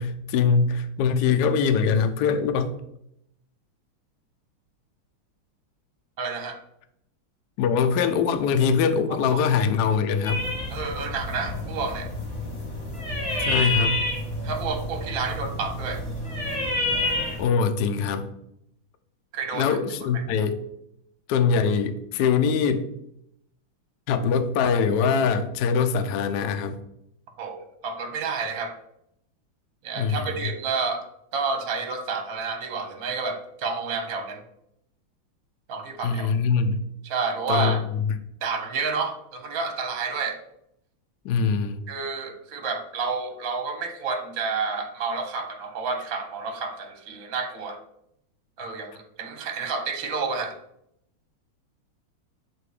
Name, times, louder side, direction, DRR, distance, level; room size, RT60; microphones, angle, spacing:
voice 1, 0.0-2.8 7.6-10.5 13.4-14.1 17.4-18.3 19.5-20.6 21.3-22.8 24.1-26.8 30.0-30.3 36.0-36.8 37.5-38.1 41.2-41.8, left 6 dB, 75° left, 8 dB, 0.9 m, -23 dB
voice 2, 6.2-6.6 10.7-12.1 14.4-16.0 19.3-19.8 27.4-28.8 29.8-31.0 31.3-34.4 35.7-36.3 37.0-37.8 38.4-40.4 41.9-47.8 48.6-50.6, right 4 dB, 55° right, 5 dB, 1.0 m, -30 dB
sound 1, 10.2-17.4, left 2 dB, 20° left, 1.2 m, -29 dB
7.7 x 2.6 x 4.8 m, 0.77 s
omnidirectional pair, 2.3 m